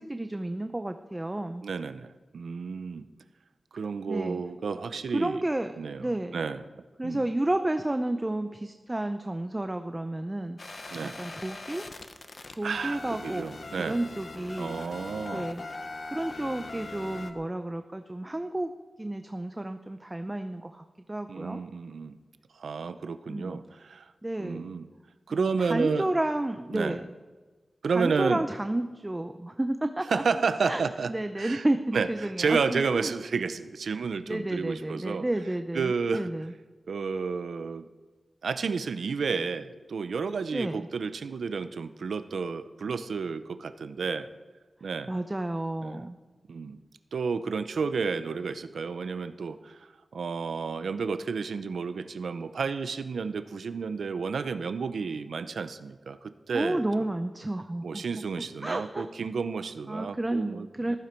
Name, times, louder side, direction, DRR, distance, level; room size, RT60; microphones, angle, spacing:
voice 1, 0.0-1.7 4.1-4.4 5.1-5.7 6.0-6.4 7.0-10.6 11.0-11.8 12.6-13.5 13.8-14.8 15.3-15.7 16.1-18.7 19.0-21.6 23.3-23.6 24.2-24.7 25.3-27.0 27.9-30.2 30.7-30.8 31.1-33.1 34.3-36.5 40.5-40.9 45.1-46.2 56.5-58.0 58.6-59.1 59.9-61.0, right 1 dB, 20° right, 8 dB, 0.6 m, -31 dB
voice 2, 1.6-3.1 3.7-5.4 5.8-6.6 7.0-7.2 10.9-11.2 12.6-14.0 14.6-15.5 21.3-22.2 22.6-24.1 24.4-24.9 25.3-26.1 26.7-27.0 27.8-28.4 30.1-31.6 31.9-32.1 32.4-35.2 35.7-36.3 36.9-37.9 38.4-44.3 44.8-45.1 45.8-46.0 46.5-46.8 47.1-57.1 57.8-61.0, right 5 dB, 90° right, 11 dB, 0.6 m, -31 dB
sound 1, 10.6-17.3, left 3 dB, 50° left, 1.1 m, -41 dB
14.5 x 14.5 x 4.5 m, 1.3 s
wide cardioid pair, 90°, 0 cm